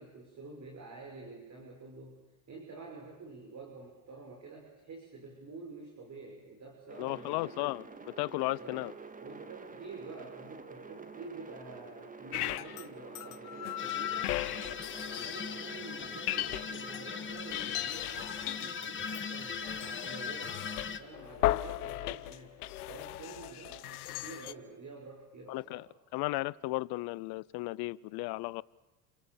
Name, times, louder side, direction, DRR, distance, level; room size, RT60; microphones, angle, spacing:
voice 1, 0.0-2.2 2.5-7.6 8.4-8.9 9.2-14.4 15.0-25.9, right 3 dB, 40° right, 1 dB, 6.4 m, -48 dB
sound 1, 6.9-19.3 19.9-22.0, right 4 dB, 20° right, 2.1 m, -50 dB
voice 2, 7.0-8.9 25.5-25.9 26.1-28.6, left 21 dB, 55° left, 22 dB, 0.8 m, -35 dB
sound 2, 12.3-12.9 13.2-15.7 16.0-17.0 17.4-24.5, left 15 dB, 80° left, 1.0 m, -36 dB
sound 3, 13.8-21.0, left 5 dB, 25° left, 1.8 m, -40 dB
29.5 x 24.5 x 7.2 m, 1.1 s
hypercardioid pair, 75°, 45 cm